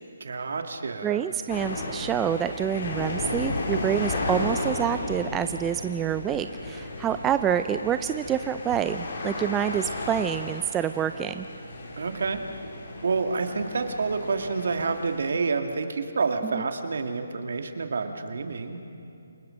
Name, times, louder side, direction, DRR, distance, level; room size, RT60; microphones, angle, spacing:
voice 1, 0.2-1.2 12.0-12.4 13.0-18.8, right 4 dB, 65° right, 6 dB, 2.1 m, -28 dB
voice 2, 1.0-11.5 16.4-16.7, right 9 dB, 15° right, 10 dB, 0.4 m, -27 dB
sound 1, 1.5-15.3, left 2 dB, 55° left, 4.6 m, -34 dB
28.5 x 19.5 x 6.4 m, 2.7 s
figure-of-eight pair, 150°, 0 cm